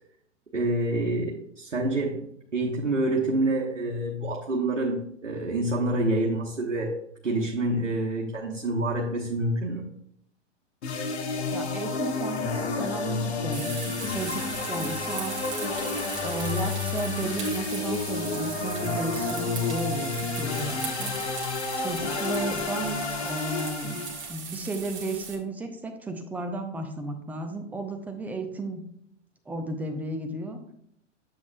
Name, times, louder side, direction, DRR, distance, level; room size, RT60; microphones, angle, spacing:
voice 1, 0.5-7.0 7.2-9.8, right 2 dB, 75° right, -3 dB, 1.3 m, -27 dB
sound 1, 10.8-24.3, left 4 dB, 60° left, 1.3 m, -30 dB
voice 2, 11.5-15.4 16.2-20.1 20.4-21.2 21.8-24.0 24.3-28.8 29.5-30.6, right 2 dB, 5° right, 6 dB, 0.5 m, -34 dB
sound 2, 13.5-25.4, right 6 dB, 30° right, 1.7 m, -38 dB
9.5 x 7.3 x 2.3 m, 0.70 s
figure-of-eight pair, 100°, 36 cm